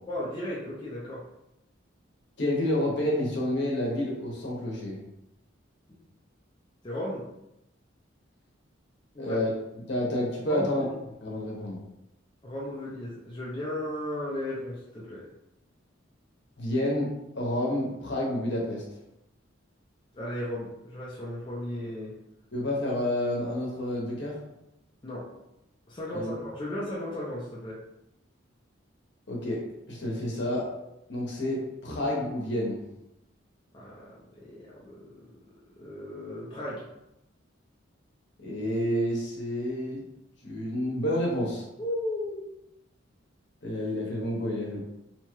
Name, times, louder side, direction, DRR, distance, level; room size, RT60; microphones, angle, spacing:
voice 1, 0.1-1.2 5.9-6.0 6.8-7.2 9.1-9.4 10.5-10.9 12.4-15.2 20.1-22.1 25.0-25.3 25.9-27.8 33.7-35.1 35.8-36.8 41.8-42.5, left 1 dB, 25° left, -6 dB, 0.5 m, -35 dB
voice 2, 2.4-5.0 9.2-9.5 9.9-10.8 11.2-11.8 16.6-18.8 22.5-24.4 26.1-26.3 29.3-29.6 29.9-30.7 31.1-32.8 38.4-40.0 40.4-41.6 43.6-44.8, left 1 dB, 55° left, -3 dB, 0.8 m, -29 dB
2.8 x 2.3 x 3.0 m, 0.87 s
head